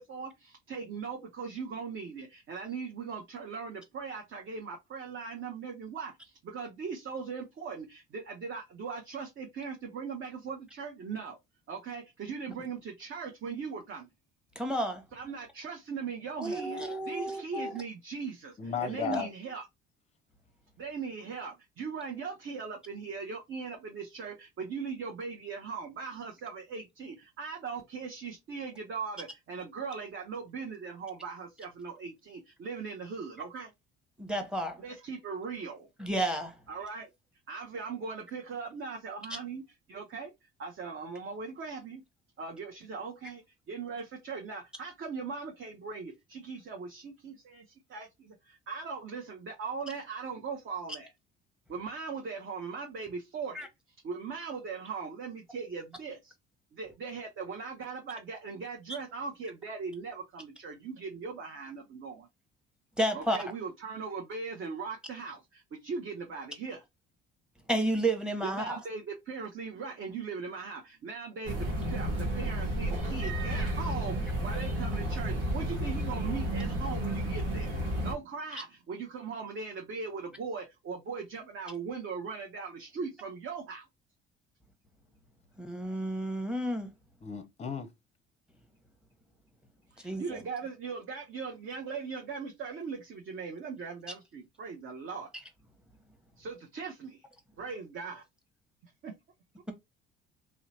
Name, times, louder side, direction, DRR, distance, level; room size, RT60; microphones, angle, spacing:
voice 1, 0.0-11.4 11.7-14.1 15.1-19.7 20.8-33.7 34.8-35.9 36.7-37.1 37.5-39.6 39.9-40.3 40.6-42.0 42.4-51.1 51.7-53.7 54.0-56.3 56.7-62.3 63.1-66.8 68.4-83.9 89.9-95.3 96.4-97.2 97.6-98.2 98.8-99.1, right 5 dB, 45° right, 0.7 m, -39 dB
voice 2, 14.6-15.0 16.4-17.7 19.1-19.2 34.2-34.8 36.0-36.6 53.5-53.7 63.0-63.4 67.7-68.8 85.6-86.9 90.0-90.2, right 1 dB, 5° right, 0.9 m, -31 dB
voice 3, 18.6-19.3 87.2-87.9, left 7 dB, 25° left, 0.5 m, -34 dB
sound 1, 71.4-78.1, right 1 dB, 80° right, 1.0 m, -32 dB
2.8 x 2.1 x 2.7 m
hypercardioid pair, 55°, 29 cm